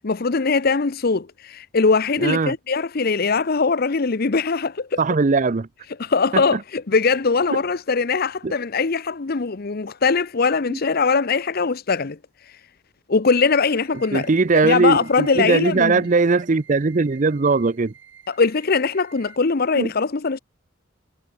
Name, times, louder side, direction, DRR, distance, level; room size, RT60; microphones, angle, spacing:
voice 1, 0.0-5.0 6.0-12.2 12.5-12.6 13.1-14.3 14.6-16.0 18.3-20.4, left 4 dB, 50° left, 0.7 m, -21 dB
voice 2, 2.2-2.5 5.0-5.7 6.3-6.4 7.5-7.6 8.4-8.5 10.7-10.8 14.1-17.9 19.8-19.9, right 4 dB, 40° right, 0.5 m, -19 dB
sound 1, 13.4-19.4, right 8 dB, 70° right, 7.1 m, -50 dB
head